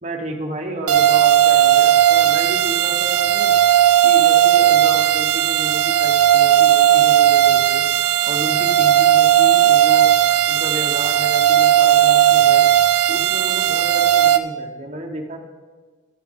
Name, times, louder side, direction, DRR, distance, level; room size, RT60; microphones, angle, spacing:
voice 1, 0.0-3.6 4.0-7.9 8.2-10.1 10.5-12.7 13.1-15.4, right 1 dB, 30° right, 2 dB, 1.0 m, -31 dB
sound 1, 0.9-14.4, right 11 dB, 85° right, 0.5 m, -15 dB
12.0 x 7.1 x 3.6 m, 1.4 s
head